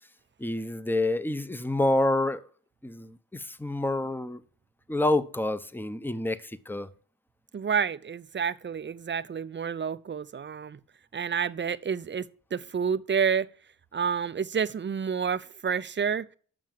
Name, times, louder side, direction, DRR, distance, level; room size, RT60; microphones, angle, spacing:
voice 1, 0.4-2.4 2.8-4.4 4.9-6.9, left 2 dB, 5° left, 0.8 m, -28 dB
voice 2, 7.5-10.8 11.1-13.5 13.9-16.3, right 6 dB, 30° right, 0.6 m, -29 dB
7.5 x 6.2 x 7.5 m
cardioid pair, 60°, 35 cm